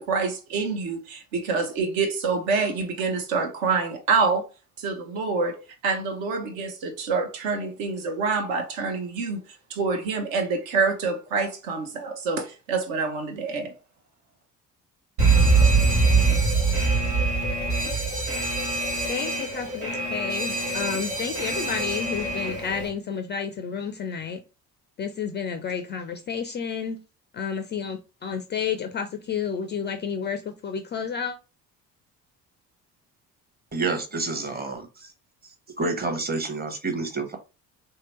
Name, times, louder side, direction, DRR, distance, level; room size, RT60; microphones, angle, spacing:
voice 1, 0.0-4.4 4.8-9.4 9.7-13.7, right 4 dB, 65° right, 0.9 m, -26 dB
Alarm, 15.2-22.9, right 3 dB, 80° right, 1.0 m, -23 dB
voice 2, 19.1-24.4 25.0-27.0 27.3-31.4, left 6 dB, 25° left, 0.3 m, -31 dB
voice 3, 33.7-35.1 35.8-37.4, right 3 dB, 20° right, 0.9 m, -28 dB
3.2 x 2.8 x 3.0 m
figure-of-eight pair, 50°, 47 cm